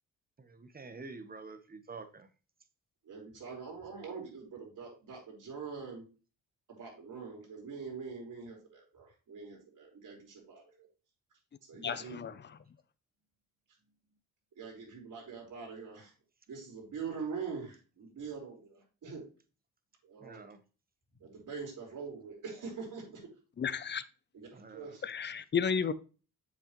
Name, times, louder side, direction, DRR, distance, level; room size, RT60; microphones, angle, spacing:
voice 1, 0.4-2.3 20.2-20.6 24.5-25.0, right 4 dB, 25° right, 1.2 m, -48 dB
voice 2, 3.0-6.0 6.7-10.9 11.7-12.2 14.6-16.1 16.5-19.2 20.0-20.4 21.2-23.2 24.3-25.0, right 5 dB, 60° right, 4.6 m, -44 dB
voice 3, 11.8-12.6 23.6-24.0 25.0-25.9, left 6 dB, 30° left, 0.6 m, -33 dB
7.3 x 6.5 x 3.1 m
cardioid pair, 80°, 34 cm